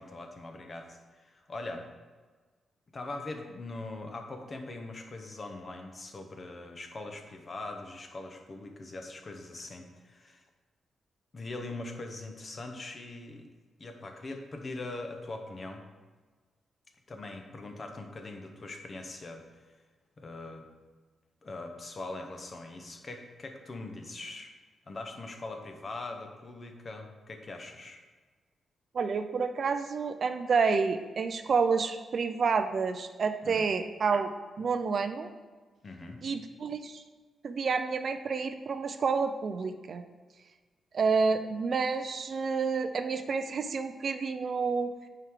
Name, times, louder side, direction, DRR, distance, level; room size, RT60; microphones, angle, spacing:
voice 1, 0.0-1.9 2.9-10.5 11.3-13.5 13.8-15.8 17.1-19.7 20.2-20.7 21.4-24.5 24.9-28.0 33.4-33.7 35.8-36.2, left 2 dB, 30° left, 4 dB, 0.7 m, -42 dB
voice 2, 28.9-34.3 34.6-35.3 36.2-37.0 37.4-40.0 40.9-45.1, right 5 dB, 45° right, 8 dB, 0.3 m, -29 dB
9.0 x 4.7 x 3.6 m, 1.4 s
wide cardioid pair, 165°, 0 cm